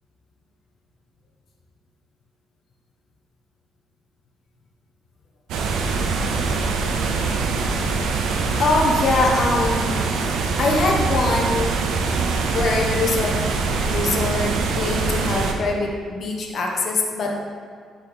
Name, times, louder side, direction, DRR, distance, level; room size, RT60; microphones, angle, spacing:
sound 1, 5.5-15.5, right 4 dB, 85° right, 0.7 m, -23 dB
voice 1, 8.6-10.0 10.6-11.7 12.5-13.4 13.9-17.4, left 3 dB, 55° left, 0 dB, 1.2 m, -23 dB
10.5 x 4.6 x 3.6 m, 2.1 s
cardioid pair, 90°, 0 cm